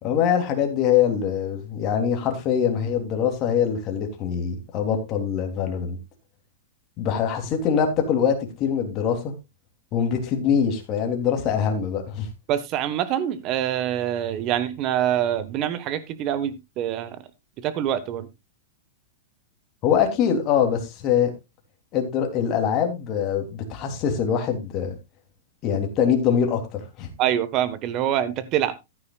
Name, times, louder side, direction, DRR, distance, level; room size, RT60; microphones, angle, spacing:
voice 1, 0.0-6.0 7.0-9.3 9.9-12.3 19.8-21.3 21.9-24.9 25.6-27.1, left 8 dB, 30° left, 3.2 m, -23 dB
voice 2, 12.5-17.2 17.6-18.3 27.2-28.8, right 11 dB, 30° right, 1.3 m, -25 dB
14.5 x 9.6 x 2.4 m
supercardioid pair, 155°, 0 cm